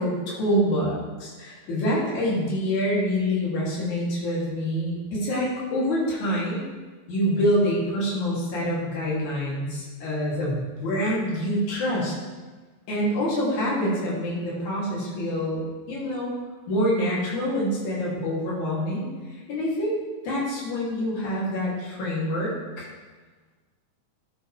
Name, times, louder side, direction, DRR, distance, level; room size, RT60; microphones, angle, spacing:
voice 1, 0.0-6.7 7.1-12.1 12.9-15.6 15.9-16.3 16.7-19.1 19.5-22.9, equal, 60° left, -6 dB, 4.0 m, -26 dB
13.0 x 8.3 x 3.3 m, 1.3 s
omnidirectional pair, 3.8 m